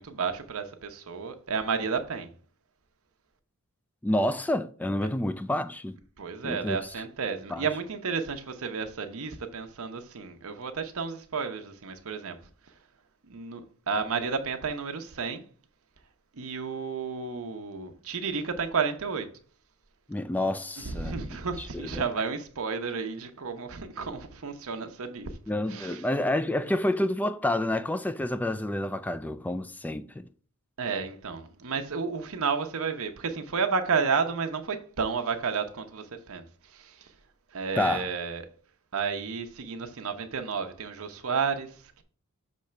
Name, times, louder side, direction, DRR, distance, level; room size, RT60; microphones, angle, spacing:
voice 1, 0.0-2.3 6.2-12.4 13.3-15.4 16.3-19.3 20.8-25.3 25.7-26.0 30.8-37.1 37.5-38.4 38.9-42.0, right 5 dB, 65° right, 0.8 m, -32 dB
voice 2, 4.0-6.0 6.4-6.8 7.5-7.7 20.1-21.2 21.6-22.0 25.5-30.3 37.8-38.1, left 1 dB, 5° left, 0.3 m, -29 dB
6.4 x 3.2 x 5.6 m
head